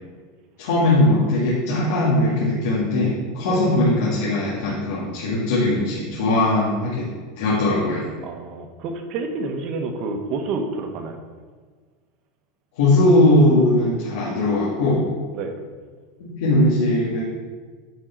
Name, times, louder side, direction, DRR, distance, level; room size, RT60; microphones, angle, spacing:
voice 1, 0.6-7.1 7.4-8.0 12.8-15.1 16.2-17.2, left 1 dB, 75° left, -7 dB, 1.8 m, -19 dB
voice 2, 8.2-11.2 15.3-15.5, right 3 dB, 45° right, 4 dB, 1.0 m, -29 dB
9.6 x 3.8 x 4.5 m, 1.5 s
supercardioid pair, 135°, 0 cm